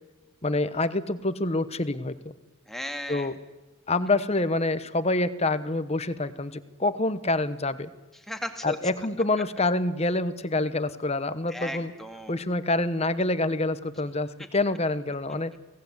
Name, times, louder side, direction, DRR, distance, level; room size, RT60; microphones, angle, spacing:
voice 1, 0.4-2.3 3.1-3.3 3.9-7.9 8.6-11.9 12.3-15.5, left 2 dB, 30° left, 13 dB, 1.0 m, -27 dB
voice 2, 2.7-3.4 8.3-8.8 11.5-12.4, equal, ahead, 4 dB, 2.1 m, -35 dB
24.5 x 18.0 x 8.2 m, 1.2 s
head